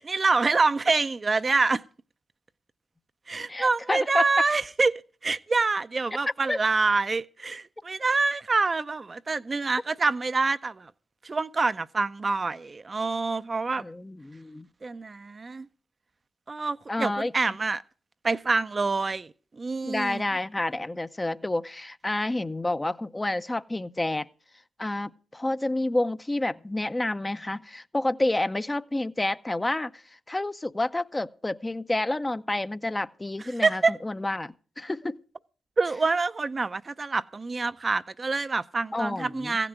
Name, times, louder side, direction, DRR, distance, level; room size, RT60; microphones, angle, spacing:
voice 1, 0.0-1.8 3.3-10.9 11.2-13.8 14.8-15.7 16.5-17.8 18.2-20.3 33.6-34.0 35.8-39.7, right 3 dB, 35° right, 0.5 m, -26 dB
voice 2, 3.5-4.3 6.5-6.6 13.8-14.7 16.9-17.3 19.8-24.3 24.8-30.0 30.3-35.2 38.9-39.6, left 2 dB, 20° left, 0.6 m, -29 dB
15.5 x 6.0 x 7.9 m
hypercardioid pair, 45°, 0 cm